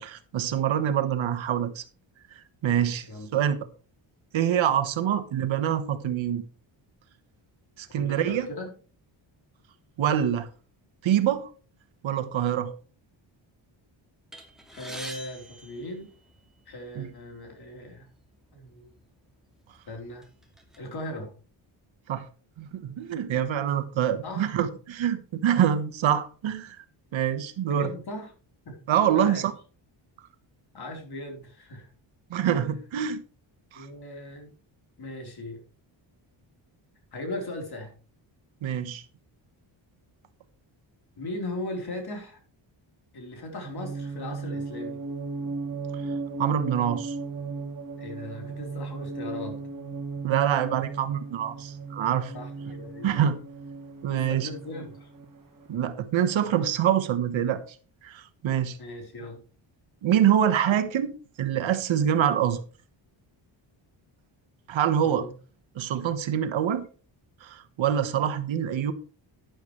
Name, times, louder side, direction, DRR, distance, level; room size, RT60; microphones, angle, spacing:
voice 1, 0.0-1.8 2.6-3.1 3.3-3.7 4.3-6.4 7.8-8.5 10.0-10.5 11.0-11.5 12.0-12.7 16.9-17.1 22.1-22.3 22.6-26.8 27.1-27.9 28.9-29.5 32.3-33.2 33.7-33.9 38.6-39.0 46.4-47.2 50.2-52.3 53.0-53.4 54.0-54.5 55.7-57.6 58.0-58.8 60.0-62.6 64.7-65.3 65.7-66.9 67.4-68.9, right 9 dB, 75° right, 1.4 m, -25 dB
voice 2, 2.7-3.3 8.0-8.7 14.7-16.1 16.7-18.1 18.5-19.0 19.9-20.2 20.8-21.3 24.2-24.4 27.6-28.3 28.7-28.9 29.1-29.5 30.7-31.9 33.7-34.5 35.0-35.6 37.1-37.9 41.2-42.4 43.1-45.0 48.0-49.6 52.3-53.2 54.1-55.1 58.8-59.4 65.0-65.3, left 1 dB, 50° left, 4.1 m, -38 dB
sound 1, 14.3-16.7 17.5-17.6 17.9-18.1 19.0-19.1 19.6-20.8, right 1 dB, ahead, 2.5 m, -44 dB
sound 2, 43.6-55.7, right 4 dB, 45° right, 2.2 m, -36 dB
12.0 x 10.5 x 3.3 m
cardioid pair, 115°, 47 cm